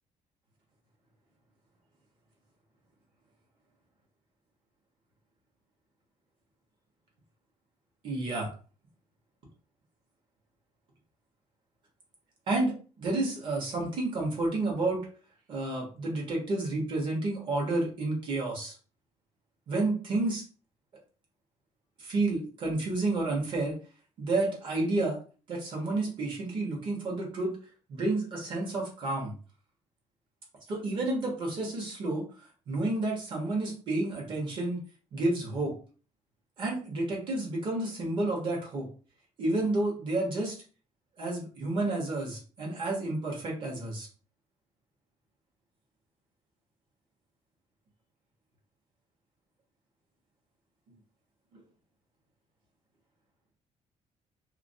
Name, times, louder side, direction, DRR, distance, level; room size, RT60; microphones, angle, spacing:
voice 1, 8.0-8.5 12.5-15.0 15.5-18.7 19.7-20.4 22.0-23.8 24.2-25.2 25.5-27.5 27.9-29.3 30.7-32.2 32.7-34.8 35.1-35.7 36.6-38.9 39.4-40.5 41.2-44.1, right 2 dB, 45° right, -2 dB, 0.9 m, -30 dB
2.4 x 2.0 x 2.6 m, 0.38 s
cardioid pair, 175°, 12 cm